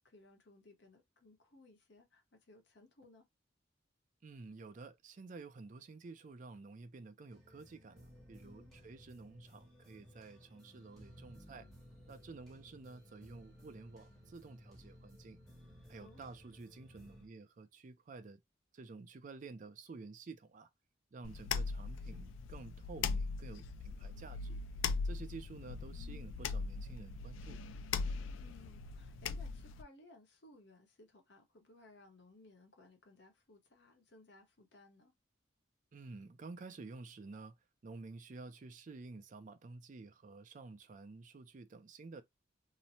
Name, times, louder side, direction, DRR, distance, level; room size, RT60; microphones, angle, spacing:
voice 1, 0.0-3.3 8.4-8.7 16.0-16.2 28.4-35.1, left 2 dB, 60° left, 0.9 m, -61 dB
voice 2, 4.2-11.7 12.1-15.4 15.9-18.4 18.7-20.7 21.1-24.6 25.0-27.6 35.9-37.6 37.8-42.2, right 3 dB, 40° right, 0.4 m, -51 dB
sound 1, 7.3-17.3, equal, ahead, 0.9 m, -58 dB
sound 2, 21.2-29.8, left 5 dB, 75° left, 0.3 m, -40 dB
3.0 x 2.0 x 2.6 m
head